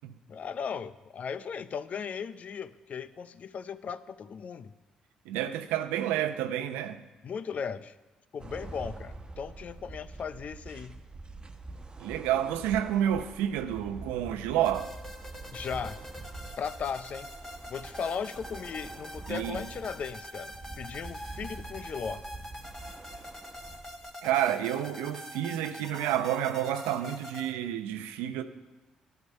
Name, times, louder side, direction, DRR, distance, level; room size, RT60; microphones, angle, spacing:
voice 1, 0.3-4.7 7.2-7.9 8.3-11.0 15.5-16.0 16.6-17.3 17.7-22.2, left 6 dB, 55° left, 0.6 m, -37 dB
voice 2, 5.3-7.0 12.0-14.9 19.3-19.6 24.2-28.4, right 11 dB, 85° right, 0.7 m, -29 dB
sound 1, 8.4-24.1, right 3 dB, 30° right, 1.2 m, -45 dB
sound 2, 14.6-27.5, equal, 15° left, 2.0 m, -45 dB
12.0 x 11.0 x 5.5 m
hypercardioid pair, 50°, 3 cm